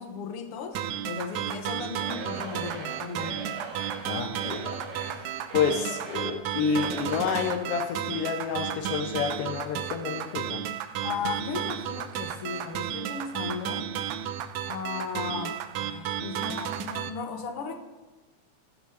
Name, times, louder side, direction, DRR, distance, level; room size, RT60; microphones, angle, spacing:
voice 1, 0.0-3.4 11.0-13.9 14.7-17.8, left 5 dB, 60° left, 6 dB, 1.7 m, -36 dB
sound 1, 0.7-17.1, right 10 dB, 80° right, 2.1 m, -33 dB
Singing / Crowd, 1.9-7.6, right 2 dB, 65° right, 4.0 m, -42 dB
voice 2, 4.0-4.8 5.0-10.7, left 7 dB, 75° left, 5 dB, 1.4 m, -29 dB
13.0 x 7.1 x 6.7 m, 1.2 s
omnidirectional pair, 3.5 m